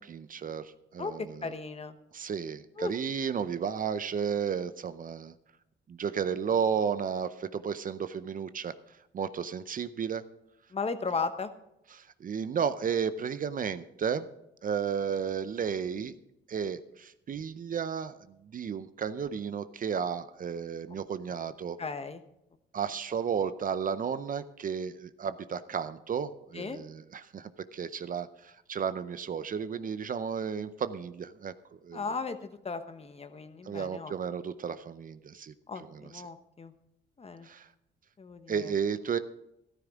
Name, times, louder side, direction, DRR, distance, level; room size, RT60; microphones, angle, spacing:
voice 1, 0.0-1.5 2.1-5.3 5.9-8.7 9.1-10.2 11.9-14.3 14.6-16.1 16.5-21.8 22.7-31.5 31.8-32.1 33.7-36.2 37.4-37.7 38.5-39.2, right 7 dB, 45° right, 13 dB, 0.6 m, -33 dB
voice 2, 1.4-2.0 2.8-2.9 10.7-11.5 21.8-22.2 26.5-26.8 31.9-34.1 35.7-36.7 37.2-37.5 38.2-38.7, left 4 dB, 30° left, 10 dB, 1.0 m, -36 dB
13.5 x 13.0 x 3.6 m, 0.84 s
cardioid pair, 90°, 20 cm